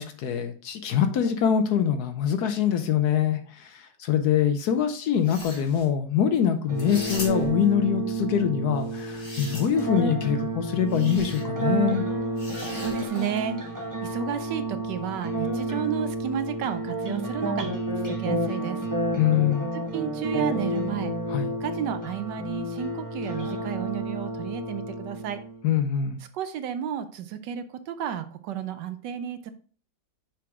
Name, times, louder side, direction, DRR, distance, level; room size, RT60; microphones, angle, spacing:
voice 1, 0.0-12.0 19.2-19.7 21.3-21.5 25.6-26.2, left 9 dB, 70° left, 8 dB, 1.1 m, -24 dB
sound 1, 5.1-5.9 6.8-7.6 8.8-10.0 10.9-11.4 12.4-13.5, left 1 dB, 45° left, 2.6 m, -40 dB
sound 2, 6.7-25.6, right 2 dB, 15° right, 0.8 m, -30 dB
voice 2, 12.8-13.6 14.0-17.7 18.1-18.9 19.7-21.1 21.6-25.4 26.3-29.5, right 9 dB, 75° right, 10 dB, 1.2 m, -32 dB
6.0 x 4.9 x 3.5 m, 0.42 s
omnidirectional pair, 2.0 m